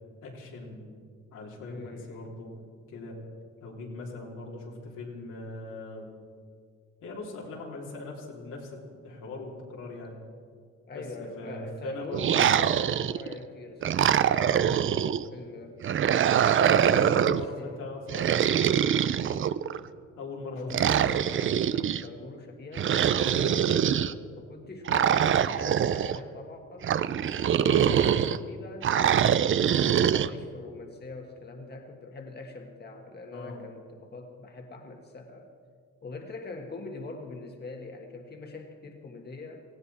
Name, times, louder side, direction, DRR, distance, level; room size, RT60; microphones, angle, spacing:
voice 1, 0.2-0.9 1.3-2.5 2.9-3.2 3.6-6.1 7.0-10.2 10.9-12.3 14.4-14.7 16.5-18.5 20.2-20.7 33.3-33.7, left 3 dB, 85° left, -2 dB, 3.4 m, -40 dB
voice 2, 1.6-2.3 10.9-14.9 15.3-15.8 17.2-17.9 20.5-26.9 27.4-35.5 36.0-39.6, left 3 dB, 35° left, 3 dB, 1.5 m, -43 dB
sound 1, 12.1-13.3 13.8-15.2 15.8-17.5 18.1-19.8 20.7-22.0 22.7-24.1 24.9-26.2 26.8-28.4 28.8-30.3, right 9 dB, 40° right, 0.5 m, -24 dB
18.5 x 15.5 x 4.2 m, 2.1 s
cardioid pair, 90°, 30 cm